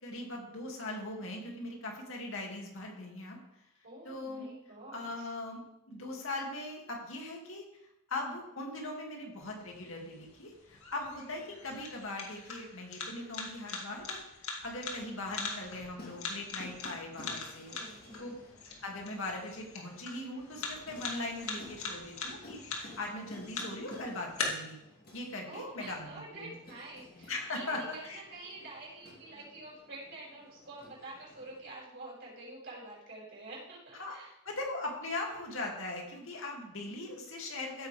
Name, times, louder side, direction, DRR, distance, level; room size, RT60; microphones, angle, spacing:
voice 1, 0.0-3.4 4.0-4.5 4.9-7.6 8.1-17.7 18.2-18.3 18.8-24.8 25.1-26.5 27.3-28.2 34.0-34.2 34.4-37.9, left 2 dB, 65° left, 0 dB, 2.6 m, -40 dB
voice 2, 3.8-5.3 17.7-18.3 25.5-34.3, right 2 dB, 55° right, -6 dB, 5.4 m, -48 dB
sound 1, 9.4-24.4, left 5 dB, 85° left, 2.3 m, -43 dB
sound 2, 15.8-31.6, left 2 dB, 45° left, 2.6 m, -54 dB
15.0 x 9.1 x 3.5 m, 0.82 s
head